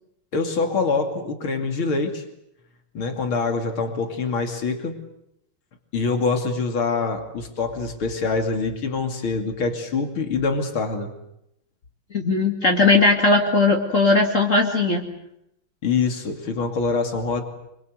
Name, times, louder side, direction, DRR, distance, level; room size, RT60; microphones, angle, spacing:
voice 1, 0.3-2.2 3.0-5.0 5.9-11.1 15.8-17.4, left 4 dB, 85° left, 5 dB, 3.5 m, -25 dB
voice 2, 12.1-15.1, left 3 dB, 35° left, 1 dB, 2.8 m, -18 dB
26.0 x 24.5 x 8.0 m, 0.80 s
omnidirectional pair, 2.2 m